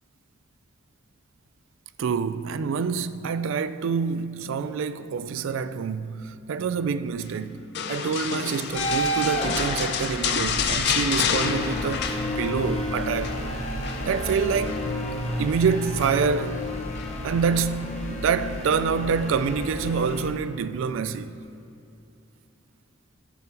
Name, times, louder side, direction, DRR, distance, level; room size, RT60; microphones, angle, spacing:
voice 1, 2.0-7.6 7.9-13.3 14.0-14.8 15.4-16.7 17.2-21.4, right 6 dB, 70° right, 0.3 m, -26 dB
sound 1, 7.7-12.8 13.0-13.4 13.8-14.9 16.0-16.4 17.0-17.1, left 7 dB, 55° left, 0.5 m, -29 dB
sound 2, 8.7-20.3, left 1 dB, 30° left, 0.8 m, -31 dB
14.0 x 6.8 x 2.9 m
head